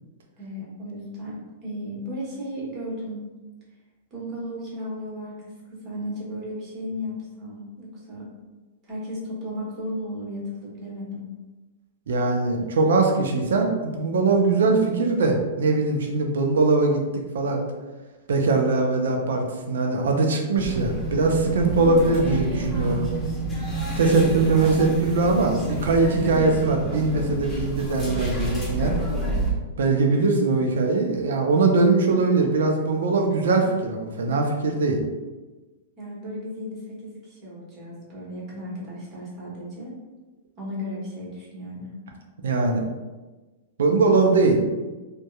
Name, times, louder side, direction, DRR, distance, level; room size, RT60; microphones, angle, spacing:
voice 1, 0.4-3.3 4.1-8.3 8.9-11.3 21.8-22.3 28.7-29.0 30.1-30.3 36.0-40.0 40.6-41.9, equal, 30° right, -5 dB, 1.1 m, -35 dB
voice 2, 12.1-17.6 18.3-23.0 23.9-28.9 29.8-35.0 42.4-42.8 43.8-44.6, right 3 dB, 80° right, 2 dB, 0.4 m, -21 dB
sound 1, 20.6-29.5, right 2 dB, 15° left, 0.8 m, -28 dB
2.7 x 2.2 x 2.2 m, 1.2 s
hypercardioid pair, 125°, 0 cm